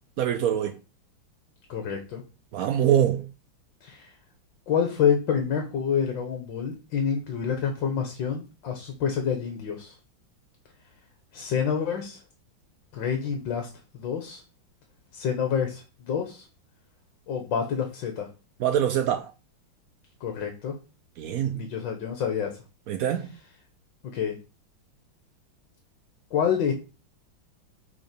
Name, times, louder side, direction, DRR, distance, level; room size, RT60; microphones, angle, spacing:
voice 1, 0.2-0.7 2.5-3.2 18.6-19.3 21.2-21.6 22.9-23.3, right 10 dB, 85° right, 0.7 m, -24 dB
voice 2, 1.7-2.2 3.8-4.1 4.7-9.9 11.3-12.2 12.9-13.7 13.9-14.4 15.1-16.5 17.3-18.3 20.2-20.7 21.5-22.5 24.1-24.4 26.3-26.7, left 7 dB, 70° left, 1.9 m, -27 dB
6.9 x 3.8 x 5.2 m
omnidirectional pair, 2.2 m